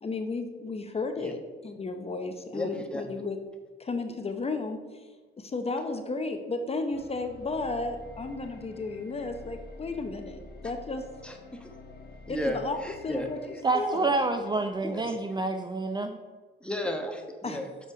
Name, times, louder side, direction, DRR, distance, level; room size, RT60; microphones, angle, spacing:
voice 1, 0.0-3.4 3.8-5.1 5.4-11.1 12.3-12.8 13.0-14.1 17.4-17.6, left 3 dB, 30° left, 6 dB, 0.8 m, -33 dB
voice 2, 2.5-3.0 11.2-11.7 12.3-13.3 14.8-15.1 16.6-17.7, left 1 dB, 5° left, 4 dB, 1.2 m, -34 dB
sound 1, 6.9-16.0, left 3 dB, 50° left, 1.2 m, -49 dB
voice 3, 13.6-16.2, right 3 dB, 20° right, 7 dB, 0.5 m, -28 dB
6.7 x 5.4 x 4.8 m, 1.3 s
cardioid pair, 90°, 20 cm